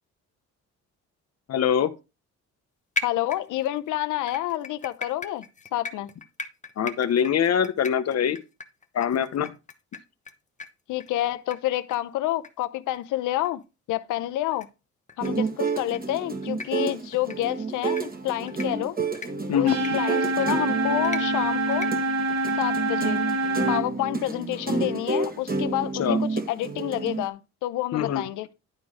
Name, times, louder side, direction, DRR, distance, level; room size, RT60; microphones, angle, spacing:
voice 1, 1.5-1.9 6.8-8.4 8.9-9.5 19.5-19.8 26.0-26.2 27.9-28.2, left 8 dB, 60° left, 1.0 m, -23 dB
voice 2, 3.0-5.4 5.7-6.1 10.9-13.6 13.9-14.7 15.2-19.0 19.5-21.9 22.6-23.2 23.7-28.5, left 14 dB, 85° left, 0.7 m, -29 dB
sound 1, 3.0-3.8 4.3-10.3 10.6-10.7 11.0-11.1 11.5-11.6 11.9-12.0 12.4-12.5 12.9-13.0 13.4-13.5 14.5-14.7 15.1-15.3 15.8-16.0 16.4-16.7 17.1-17.4 17.8-18.0 18.5-18.7 19.1-19.3 19.8-19.9 20.4-20.5 21.0-21.2 21.7-21.9 22.4-22.5, left 3 dB, 25° left, 1.0 m, -35 dB
sound 2, 15.2-27.3, right 4 dB, 30° right, 1.8 m, -30 dB
sound 3, 19.7-23.8, right 1 dB, 80° right, 4.6 m, -26 dB
11.0 x 4.0 x 5.0 m
cardioid pair, 90°, 30 cm